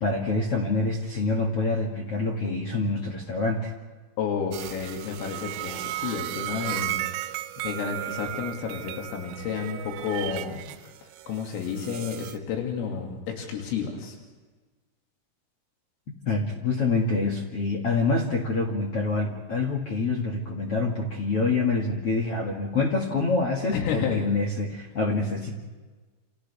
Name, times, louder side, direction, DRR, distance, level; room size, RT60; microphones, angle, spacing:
voice 1, 0.0-3.7 16.3-25.5, left 3 dB, 50° left, -1 dB, 1.7 m, -26 dB
voice 2, 4.2-14.2 23.7-24.3, left 6 dB, 85° left, 0 dB, 5.0 m, -31 dB
sound 1, 4.5-12.4, right 15 dB, 85° right, 3.4 m, -35 dB
29.0 x 28.0 x 3.5 m, 1.3 s
omnidirectional pair, 5.8 m